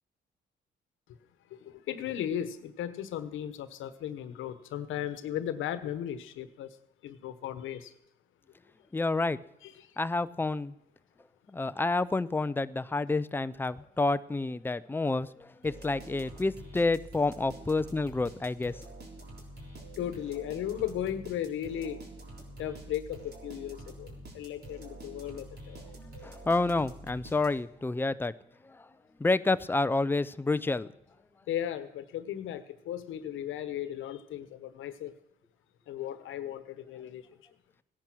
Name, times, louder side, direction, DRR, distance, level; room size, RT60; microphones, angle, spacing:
voice 1, 1.5-6.8 7.0-7.9 9.6-9.9 20.0-22.0 22.6-25.8 31.5-35.1 35.9-37.2, left 10 dB, 85° left, 12 dB, 1.2 m, -36 dB
voice 2, 8.9-9.4 10.0-10.7 11.5-18.7 26.2-28.3 28.8-28.9 29.2-30.9, left 3 dB, 10° left, 14 dB, 0.5 m, -29 dB
sound 1, 15.6-27.8, right 1 dB, 55° right, 3.7 m, -47 dB
16.5 x 10.5 x 6.2 m, 0.81 s
cardioid pair, 90°, 20 cm